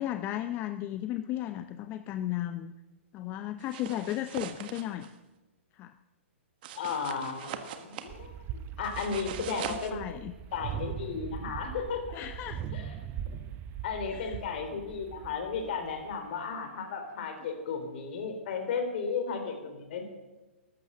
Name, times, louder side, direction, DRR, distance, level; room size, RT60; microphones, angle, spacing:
voice 1, 0.0-2.7 3.1-5.1 5.7-5.9 9.4-10.3 12.1-12.6 14.1-14.4, left 13 dB, 30° left, 9 dB, 0.6 m, -35 dB
sound 1, 3.6-5.1 6.6-8.1 8.8-9.9, right 9 dB, 50° right, 1.5 m, -41 dB
voice 2, 6.8-10.0 10.5-12.2 12.7-13.0 13.8-20.1, left 5 dB, 55° left, 5 dB, 3.8 m, -34 dB
sound 2, 8.1-16.3, right 9 dB, 30° right, 0.7 m, -40 dB
14.0 x 12.5 x 6.6 m, 1.1 s
figure-of-eight pair, 115°, 7 cm